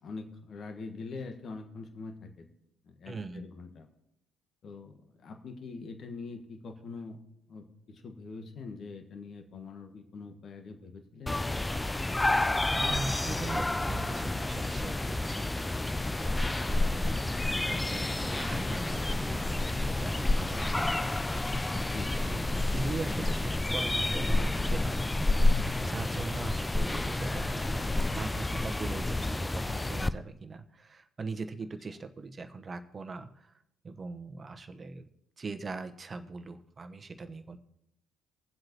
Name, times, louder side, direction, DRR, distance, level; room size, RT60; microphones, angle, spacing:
voice 1, 0.0-2.5 2.8-3.9 4.6-7.2 7.5-11.4 21.7-22.2 26.4-26.6, left 4 dB, 50° left, 6 dB, 1.5 m, -44 dB
voice 2, 3.1-3.5 12.7-15.5 16.1-17.3 17.6-21.0 22.1-35.1 35.4-37.6, right 3 dB, 35° right, 9 dB, 1.1 m, -41 dB
sound 1, 11.3-30.1, left 2 dB, 15° left, 0.5 m, -29 dB
22.5 x 7.8 x 3.0 m, 0.81 s
hypercardioid pair, 55°, 0 cm